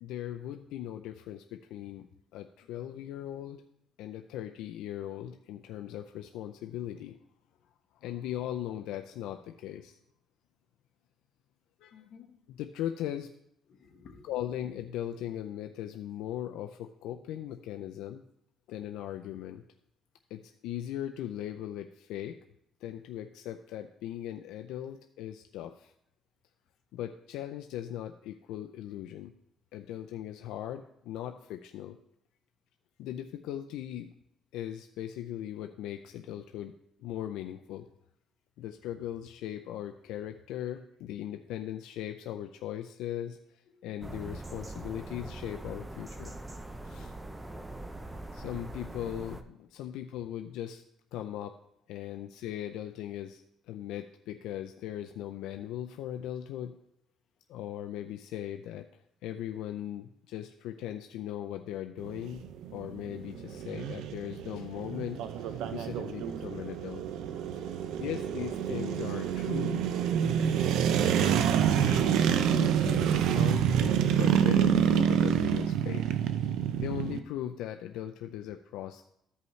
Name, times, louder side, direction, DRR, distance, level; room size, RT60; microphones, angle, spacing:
voice 1, 0.0-3.6 4.0-7.2 8.0-10.0 11.8-12.0 12.5-13.3 14.2-18.2 18.7-19.6 20.3-22.4 22.8-25.9 26.9-29.3 29.7-32.0 33.0-34.1 34.5-36.7 37.0-37.8 38.6-46.3 46.8-47.1 48.3-50.8 51.1-51.5 51.9-56.7 57.5-62.4 62.7-67.0 67.5-69.9 71.0-71.2 71.5-76.2 76.8-79.0, left 11 dB, 90° left, 5 dB, 0.4 m, -39 dB
voice 2, 11.9-12.4 13.7-14.3 43.7-43.8 49.8-50.0 76.5-77.2, left 7 dB, 55° left, 2 dB, 1.2 m, -52 dB
sound 1, 44.0-49.4, right 2 dB, 10° right, 0.6 m, -42 dB
sound 2, 62.0-77.2, right 9 dB, 75° right, 0.5 m, -27 dB
13.5 x 5.4 x 3.2 m, 0.74 s
cardioid pair, 130°, 0 cm